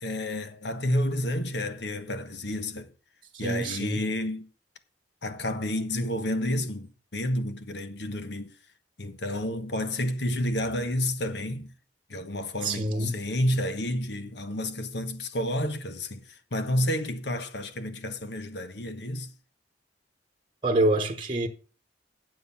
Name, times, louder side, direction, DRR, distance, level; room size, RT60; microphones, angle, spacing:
voice 1, 0.0-2.9 3.4-4.5 5.2-8.5 9.0-11.7 12.1-19.3, left 1 dB, 65° left, 1.3 m, -30 dB
voice 2, 3.4-4.0 12.6-13.2 20.6-21.5, right 2 dB, 25° right, 1.1 m, -26 dB
9.4 x 7.9 x 5.6 m
head